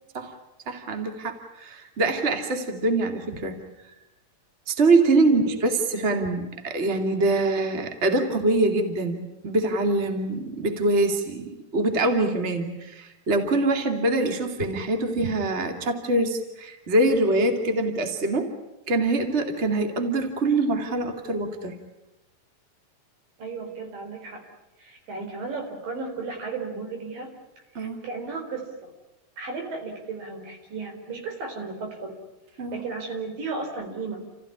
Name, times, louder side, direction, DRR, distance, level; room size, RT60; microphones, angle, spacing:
voice 1, 0.7-3.6 4.7-18.5 18.9-21.8 27.7-28.0 32.6-32.8, right 2 dB, 20° right, 5 dB, 2.3 m, -24 dB
voice 2, 5.3-5.7 23.4-24.4 24.8-27.3 27.7-28.9 29.4-32.1 32.7-34.2, right 4 dB, 75° right, 3 dB, 5.9 m, -34 dB
29.5 x 15.5 x 10.0 m, 0.99 s
omnidirectional pair, 3.9 m